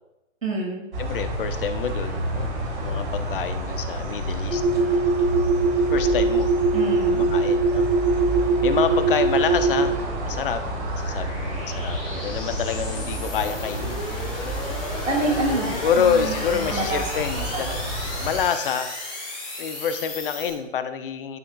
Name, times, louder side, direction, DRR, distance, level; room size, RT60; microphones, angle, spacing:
voice 1, 0.4-0.8 6.7-7.3 15.0-17.2, right 2 dB, 80° right, -1 dB, 2.3 m, -27 dB
sound 1, 0.9-18.4, right 1 dB, 60° right, 2.6 m, -30 dB
voice 2, 1.0-5.0 5.9-6.5 7.1-7.9 8.6-10.0 10.2-14.1 15.7-17.8 18.2-18.9 19.6-21.4, left 7 dB, 45° left, 10 dB, 0.6 m, -27 dB
sound 2, 4.5-9.9, right 3 dB, 10° right, 1.0 m, -21 dB
sound 3, 7.2-20.5, left 2 dB, 5° left, 0.4 m, -35 dB
12.0 x 5.3 x 2.2 m, 1.0 s
figure-of-eight pair, 130°, 38 cm